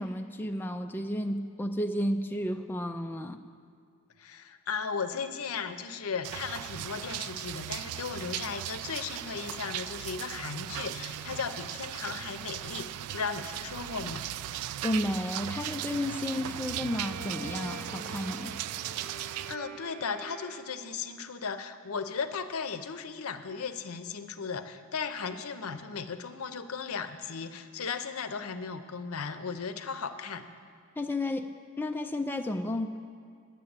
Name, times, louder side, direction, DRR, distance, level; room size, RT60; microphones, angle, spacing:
voice 1, 0.0-3.4 14.8-18.6 31.0-31.5 31.8-33.0, left 1 dB, 10° left, 4 dB, 0.3 m, -32 dB
voice 2, 4.2-14.2 19.5-30.5, left 5 dB, 70° left, 10 dB, 0.6 m, -36 dB
sound 1, 6.2-19.6, right 12 dB, 85° right, 0.3 m, -38 dB
Bowed string instrument, 16.6-21.1, right 4 dB, 40° right, 0.6 m, -45 dB
10.5 x 7.5 x 8.7 m, 2.3 s
head